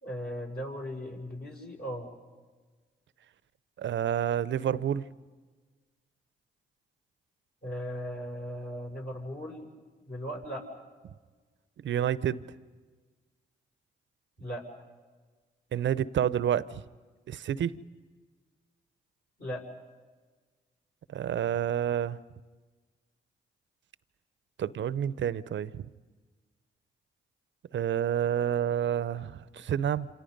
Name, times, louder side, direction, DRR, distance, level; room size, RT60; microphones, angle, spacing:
voice 1, 0.0-2.1 7.6-9.7 10.1-10.6 14.4-14.6 19.4-19.6, equal, 50° left, 6.3 m, -37 dB
voice 2, 3.8-5.1 11.8-12.4 15.7-16.8 17.3-17.8 21.1-22.2 24.6-25.9 27.7-30.1, right 9 dB, 65° right, 0.8 m, -29 dB
27.5 x 27.0 x 5.4 m
hypercardioid pair, 40°, 21 cm